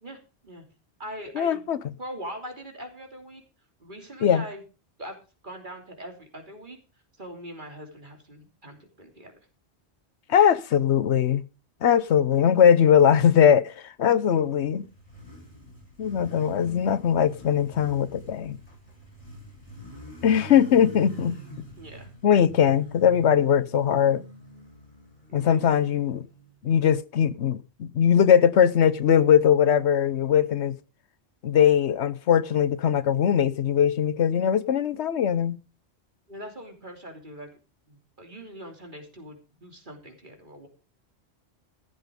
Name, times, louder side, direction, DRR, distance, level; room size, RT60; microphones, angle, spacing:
voice 1, 0.0-0.6 1.0-1.6 2.0-3.4 3.8-4.6 5.0-5.2 5.4-6.8 7.2-9.3 21.8-22.1 25.3-25.8 36.3-37.5 37.9-40.7, right 1 dB, 45° right, 3.3 m, -41 dB
voice 2, 1.3-1.8 4.2-4.4 10.3-11.4 11.8-14.9 16.0-18.6 20.2-21.4 22.2-24.2 25.3-26.3 26.6-30.8 31.4-35.6, left 8 dB, 85° left, 1.1 m, -20 dB
Motorcycle, 14.2-26.9, equal, 45° left, 8.1 m, -46 dB
14.5 x 8.2 x 5.2 m
omnidirectional pair, 1.1 m